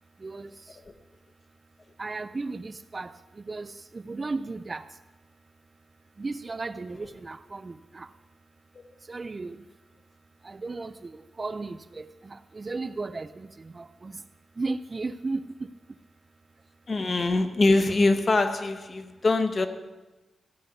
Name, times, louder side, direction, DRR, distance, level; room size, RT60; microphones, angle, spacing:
voice 1, 0.2-0.5 2.0-4.9 6.2-8.1 9.1-9.6 10.4-14.2 14.6-15.7, right 3 dB, 25° right, 12 dB, 0.3 m, -35 dB
voice 2, 16.9-19.7, left 2 dB, 35° left, 8 dB, 1.0 m, -23 dB
15.5 x 5.6 x 9.5 m, 1.1 s
wide cardioid pair, 155°, 0 cm